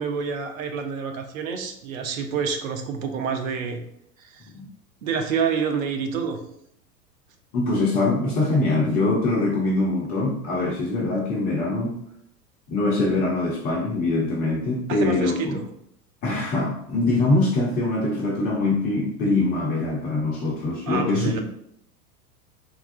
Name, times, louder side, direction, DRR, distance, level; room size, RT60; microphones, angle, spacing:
voice 1, 0.0-3.8 4.2-4.5 5.0-6.4 14.9-15.6 20.9-21.4, right 6 dB, 55° right, 5 dB, 0.6 m, -28 dB
voice 2, 7.5-12.0 12.7-15.6 16.2-21.4, left 2 dB, 20° left, -4 dB, 0.4 m, -23 dB
3.5 x 2.3 x 2.4 m, 0.71 s
figure-of-eight pair, 90°, 49 cm